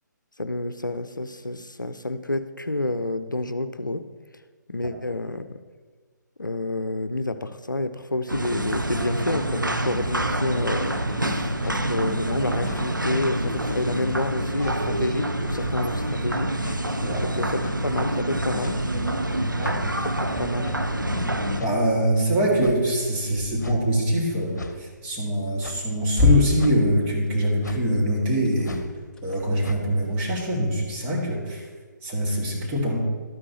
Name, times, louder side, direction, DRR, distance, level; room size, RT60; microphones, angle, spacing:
voice 1, 0.4-4.0 4.7-5.6 6.4-16.5 17.3-18.8 20.0-20.7, left 2 dB, 85° left, 11 dB, 0.6 m, -29 dB
sound 1, 8.3-21.6, right 1 dB, 85° right, 0.8 m, -27 dB
sound 2, 10.6-10.8 11.5-11.8 12.6-12.9 13.6-13.8 14.6-14.8 15.6-15.8 16.6-16.8 17.6-17.8 18.6-18.9 19.6-19.8 20.6-20.8 21.6-21.8 22.6-22.8 23.6-23.8 24.6-24.8 25.6-25.9 26.6-26.8 27.6-27.8 28.6-28.9 29.6-29.8, left 3 dB, 65° left, 1.0 m, -38 dB
sound 3, 18.3-31.9, left 4 dB, 5° left, 0.9 m, -33 dB
voice 2, 21.5-28.8 29.2-31.6 32.0-33.0, equal, 15° right, -4 dB, 2.1 m, -24 dB
12.5 x 9.6 x 3.0 m, 1.5 s
figure-of-eight pair, 140°, 10 cm